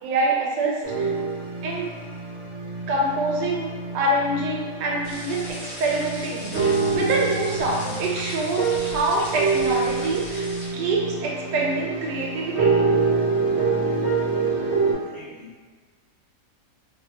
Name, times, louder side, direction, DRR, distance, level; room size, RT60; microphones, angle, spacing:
voice 1, 0.0-1.1 1.6-1.9 2.9-12.8, right 2 dB, 85° right, -2 dB, 1.2 m, -26 dB
sound 1, 0.8-14.9, right 4 dB, 60° right, 0.7 m, -26 dB
sound 2, 5.0-10.7, left 1 dB, 25° right, 0.7 m, -38 dB
voice 2, 14.9-15.7, left 2 dB, 65° left, -8 dB, 0.9 m, -47 dB
2.5 x 2.5 x 2.7 m, 1.4 s
omnidirectional pair, 1.9 m